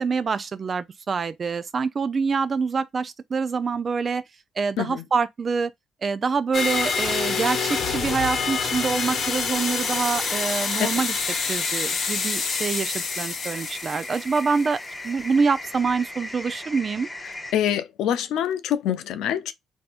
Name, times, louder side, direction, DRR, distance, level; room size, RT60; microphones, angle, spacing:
voice 1, 0.0-4.2 4.6-5.7 6.0-11.1 11.5-14.8 15.0-17.1, right 5 dB, 40° right, 0.4 m, -25 dB
sound 1, 6.5-14.9, left 5 dB, 60° left, 0.9 m, -27 dB
sound 2, 11.2-17.5, left 1 dB, 15° left, 0.6 m, -38 dB
voice 2, 17.5-19.5, left 10 dB, 85° left, 0.4 m, -25 dB
3.4 x 2.7 x 2.4 m
cardioid pair, 90°, 0 cm